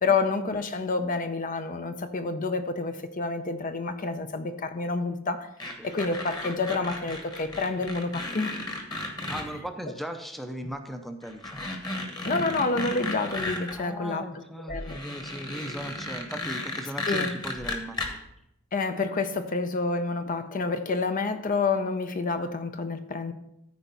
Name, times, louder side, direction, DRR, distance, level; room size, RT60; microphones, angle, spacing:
voice 1, 0.0-5.5 5.8-8.6 12.2-14.3 14.7-15.0 17.1-17.3 18.7-23.3, left 3 dB, 40° left, 9 dB, 0.6 m, -28 dB
sound 1, 5.6-9.4 10.6-10.7 11.2-13.7 14.7-18.1, left 2 dB, 20° left, 1.3 m, -34 dB
voice 2, 9.3-11.7 13.8-18.2, equal, ahead, 6 dB, 0.6 m, -38 dB
14.0 x 4.6 x 4.0 m, 0.81 s
head